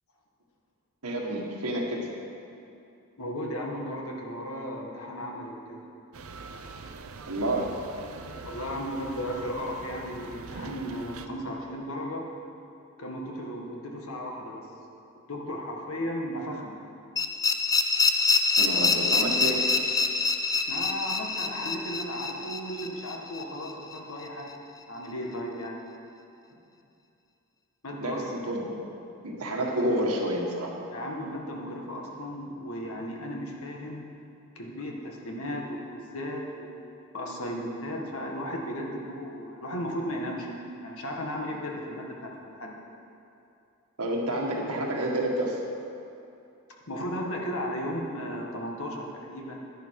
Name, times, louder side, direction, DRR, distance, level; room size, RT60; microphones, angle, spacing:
voice 1, 1.0-2.1 7.3-7.8 18.6-19.7 28.0-28.8 29.2-30.7 44.0-45.6, right 1 dB, 90° right, -1 dB, 1.8 m, -29 dB
voice 2, 3.2-5.8 8.4-12.2 13.0-14.7 15.1-16.8 20.7-24.5 24.9-25.8 27.8-28.2 30.9-34.1 34.5-36.7 37.1-42.8 46.9-49.5, equal, 70° left, 0 dB, 1.7 m, -35 dB
sound 1, 6.1-11.3, right 4 dB, 70° right, 0.6 m, -43 dB
sound 2, 17.2-24.0, left 4 dB, 15° left, 0.4 m, -26 dB
11.5 x 10.5 x 4.8 m, 2.7 s
head